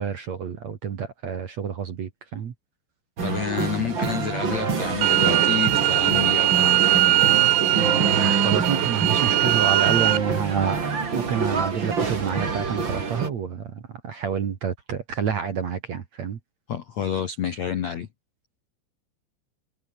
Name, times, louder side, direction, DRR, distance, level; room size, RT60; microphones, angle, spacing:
voice 1, 0.0-2.5 8.1-16.4, right 7 dB, 50° right, 2.3 m, -28 dB
voice 2, 3.2-7.3 16.7-18.1, left 8 dB, 80° left, 1.5 m, -29 dB
sound 1, 3.2-13.3, right 5 dB, 30° right, 2.9 m, -26 dB
sound 2, 5.0-10.2, right 17 dB, 75° right, 3.1 m, -20 dB
omnidirectional pair, 5.5 m